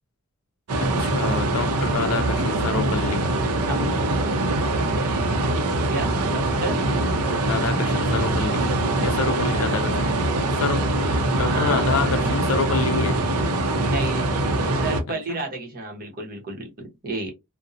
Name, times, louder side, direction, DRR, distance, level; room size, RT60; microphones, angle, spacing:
sound 1, 0.7-15.0, right 2 dB, 85° right, 0.5 m, -23 dB
voice 1, 0.8-3.4 7.4-8.7 9.0-10.2 10.6-13.2 15.1-15.5, left 4 dB, 65° left, 0.4 m, -27 dB
voice 2, 5.9-6.8 11.3-11.9 13.8-14.2 14.7-17.3, right 2 dB, 40° right, 0.8 m, -31 dB
2.6 x 2.0 x 2.5 m
head